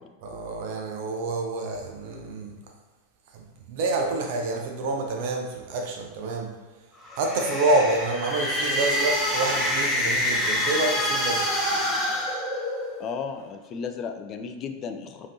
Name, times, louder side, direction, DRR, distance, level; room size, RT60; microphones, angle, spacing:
voice 1, 0.2-2.5 3.3-6.5 7.1-11.5, right 2 dB, 50° right, 1 dB, 0.7 m, -28 dB
sound 1, 7.0-13.1, left 1 dB, 10° left, 0.8 m, -26 dB
voice 2, 13.0-15.3, left 6 dB, 30° left, 6 dB, 0.3 m, -34 dB
5.0 x 2.9 x 2.7 m, 1.3 s
figure-of-eight pair, 90°, 0 cm